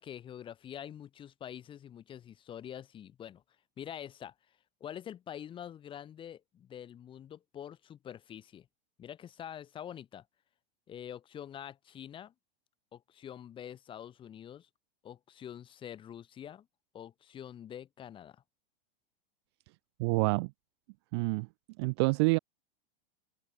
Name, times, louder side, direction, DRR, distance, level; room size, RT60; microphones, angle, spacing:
voice 1, 0.0-3.4 3.8-4.3 4.8-8.7 9.0-10.2 10.9-12.3 12.9-14.7 15.0-16.7 16.9-18.4, left 9 dB, 15° left, 1.3 m, -46 dB
voice 2, 20.0-20.5 21.1-21.5 21.8-22.4, right 28 dB, 30° right, 0.4 m, -27 dB
open air
supercardioid pair, 160°, 30 cm